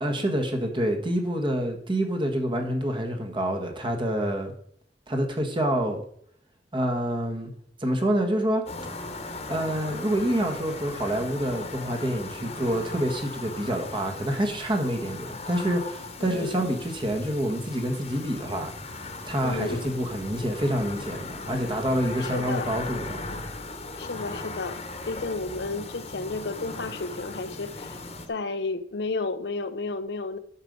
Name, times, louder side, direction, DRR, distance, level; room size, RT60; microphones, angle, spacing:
voice 1, 0.0-4.5 5.1-6.0 6.7-7.5 7.8-8.6 9.5-23.2, right 1 dB, 30° right, 1.4 m, -27 dB
sound 1, 8.7-28.3, left 3 dB, 35° left, 1.2 m, -38 dB
voice 2, 16.2-16.7 19.4-19.9 22.2-22.7 24.0-28.0 28.3-30.4, left 3 dB, 70° left, 0.7 m, -32 dB
10.0 x 6.5 x 5.3 m
head